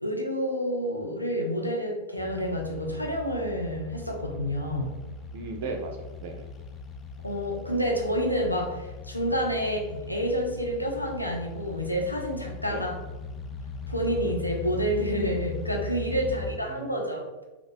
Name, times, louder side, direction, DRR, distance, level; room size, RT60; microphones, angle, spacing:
voice 1, 0.0-5.0 7.2-13.0 13.9-17.4, equal, 85° left, 0 dB, 0.5 m, -29 dB
sound 1, 2.2-16.6, left 4 dB, 20° left, 0.3 m, -39 dB
voice 2, 5.3-6.5 12.7-12.9 16.2-17.0, right 3 dB, 55° right, 4 dB, 0.4 m, -37 dB
3.7 x 2.3 x 2.7 m, 1.1 s
figure-of-eight pair, 90°, 0 cm